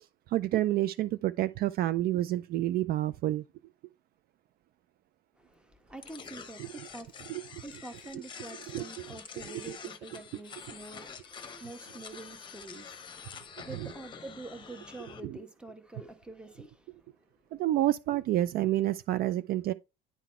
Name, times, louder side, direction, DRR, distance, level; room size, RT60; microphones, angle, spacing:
voice 1, 0.0-3.4 7.3-7.6 8.1-8.2 8.7-8.9 9.4-9.8 13.7-13.9 15.2-15.4 17.5-19.7, right 14 dB, 55° right, 0.4 m, -29 dB
voice 2, 5.4-17.0, right 2 dB, 5° right, 1.1 m, -47 dB
sound 1, 6.0-15.2, left 6 dB, 25° left, 1.0 m, -47 dB
10.0 x 4.0 x 4.3 m
cardioid pair, 145°, 19 cm